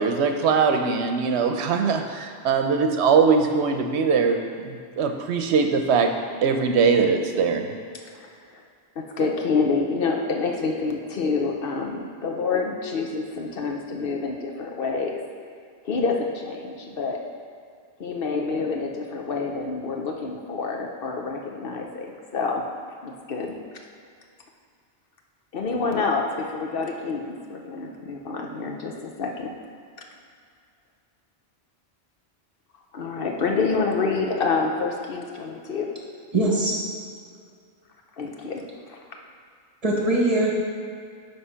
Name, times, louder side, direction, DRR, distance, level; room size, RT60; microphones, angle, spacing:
voice 1, 0.0-6.1 6.4-7.6, right 5 dB, 85° right, 5 dB, 0.9 m, -21 dB
voice 2, 9.0-15.2 15.8-17.2 18.0-22.6 23.0-23.6 25.5-29.5 32.9-35.9 38.2-39.0, left 4 dB, 60° left, 2 dB, 0.9 m, -27 dB
voice 3, 36.3-36.8 39.8-40.5, right 2 dB, 35° right, -3 dB, 1.3 m, -21 dB
9.4 x 3.3 x 5.6 m, 2.2 s
omnidirectional pair, 1.1 m